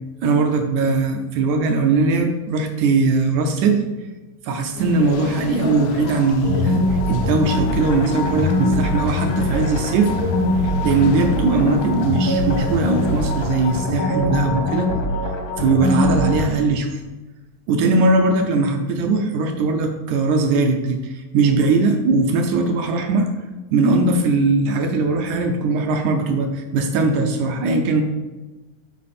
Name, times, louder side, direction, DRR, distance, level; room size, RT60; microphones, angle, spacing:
voice 1, 0.2-3.8 4.4-10.1 10.8-14.9 15.6-17.0 17.7-23.3 23.7-28.0, right 3 dB, 80° right, 5 dB, 1.7 m, -20 dB
sound 1, 4.8-13.9, left 6 dB, 80° left, 1.9 m, -32 dB
sound 2, 6.4-16.5, left 1 dB, 60° left, 1.2 m, -22 dB
10.5 x 4.7 x 4.3 m, 1.2 s
omnidirectional pair, 4.1 m